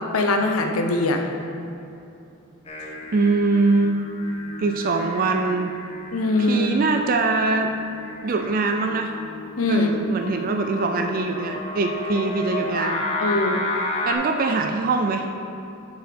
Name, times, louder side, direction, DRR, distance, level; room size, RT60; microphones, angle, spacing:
voice 1, 0.1-1.3 6.1-6.7 9.6-9.9 13.2-13.6, left 2 dB, 75° left, 4 dB, 0.7 m, -21 dB
Singing, 2.7-14.1, left 2 dB, 25° left, 0.7 m, -33 dB
voice 2, 3.1-4.1 4.6-5.7 6.4-7.7 8.2-9.1 9.7-13.0 14.0-15.3, right 3 dB, 40° right, 4 dB, 0.4 m, -23 dB
7.8 x 4.8 x 5.1 m, 2.7 s
head